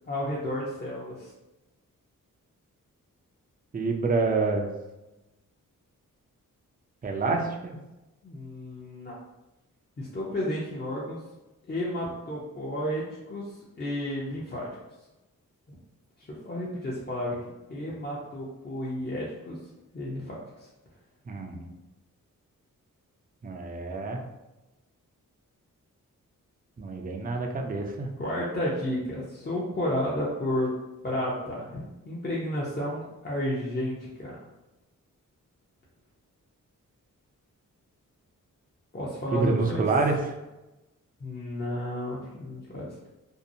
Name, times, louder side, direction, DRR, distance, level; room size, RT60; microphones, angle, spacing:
voice 1, 0.1-1.3 8.2-9.2 10.0-11.2 11.7-13.0 13.3-13.4 13.8-14.7 16.4-17.3 17.7-19.6 19.9-20.4 28.2-30.7 31.0-34.4 38.9-39.8 41.2-43.1, left 1 dB, 30° left, -7 dB, 0.6 m, -32 dB
voice 2, 3.7-4.7 7.0-7.8 21.3-21.8 23.4-24.2 26.8-28.1 39.3-40.3, right 3 dB, 25° right, 2 dB, 0.4 m, -27 dB
2.7 x 2.0 x 2.6 m, 1.0 s
cardioid pair, 75°, 33 cm